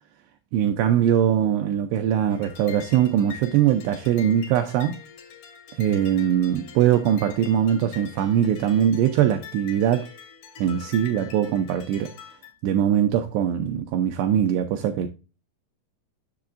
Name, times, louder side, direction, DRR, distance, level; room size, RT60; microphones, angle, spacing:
voice 1, 0.5-5.0 5.8-10.1 10.6-12.1 12.6-15.1, right 10 dB, 85° right, 2.4 m, -21 dB
sound 1, 2.3-12.5, left 7 dB, 60° left, 2.2 m, -44 dB
7.9 x 6.6 x 2.4 m
omnidirectional pair, 5.4 m